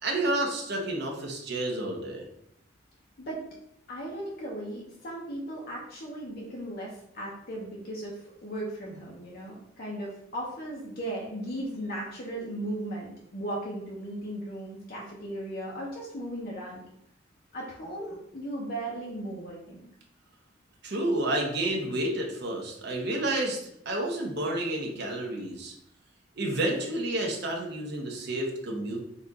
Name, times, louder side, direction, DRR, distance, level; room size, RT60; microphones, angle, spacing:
voice 1, 0.0-2.2 20.8-23.6 23.8-25.7 26.4-29.0, right 1 dB, 60° right, 0 dB, 1.0 m, -30 dB
voice 2, 3.9-16.8 17.5-19.8, right 1 dB, 50° left, -4 dB, 0.8 m, -37 dB
4.1 x 2.5 x 4.1 m, 0.73 s
head